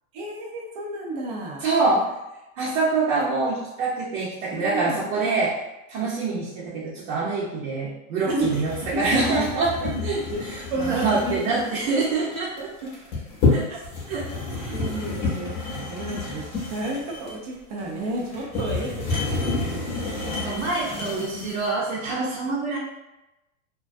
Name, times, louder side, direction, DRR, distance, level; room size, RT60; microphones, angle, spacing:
voice 1, 0.1-1.6 1.9-2.1 4.5-5.0 5.9-6.1 8.3-8.5 8.8-9.5 9.9-10.0 10.3-10.4 10.7-11.4 13.7-13.8 14.7-20.5, right 1 dB, 30° right, -1 dB, 0.4 m, -31 dB
voice 2, 1.6-2.0 2.6-5.5 5.9-10.2 10.5-12.9 13.5-13.6 14.1-14.2 14.5-14.7 20.4-22.8, right 3 dB, 65° right, -7 dB, 0.8 m, -25 dB
sound 1, 8.4-21.7, left 3 dB, 25° left, 0.7 m, -29 dB
2.3 x 2.2 x 2.5 m, 0.96 s
supercardioid pair, 155°, 41 cm